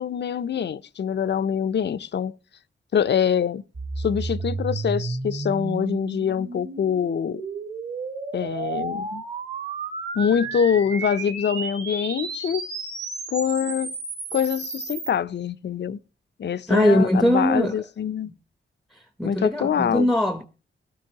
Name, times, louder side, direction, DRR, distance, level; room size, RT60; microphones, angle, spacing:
voice 1, 0.0-2.3 2.9-3.6 4.0-7.4 8.3-9.2 10.2-12.7 13.3-13.9 14.3-16.0 16.4-18.3 19.2-20.1, left 8 dB, 55° left, 0.5 m, -24 dB
sound 1, 3.7-15.1, right 3 dB, 50° right, 2.8 m, -32 dB
voice 2, 16.7-17.8 18.9-20.5, equal, ahead, 0.7 m, -21 dB
17.0 x 12.5 x 2.8 m
cardioid pair, 75°, 21 cm